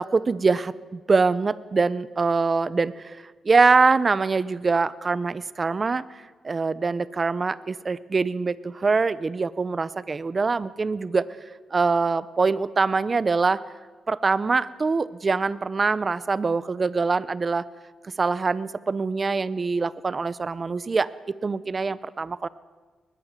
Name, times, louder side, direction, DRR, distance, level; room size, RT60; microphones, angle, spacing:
voice 1, 0.0-3.2 3.4-11.3 11.7-13.6 14.1-17.7 18.2-22.5, right 4 dB, 35° right, 17 dB, 0.8 m, -24 dB
21.5 x 20.5 x 7.5 m, 1.4 s
cardioid pair, 100°, 0 cm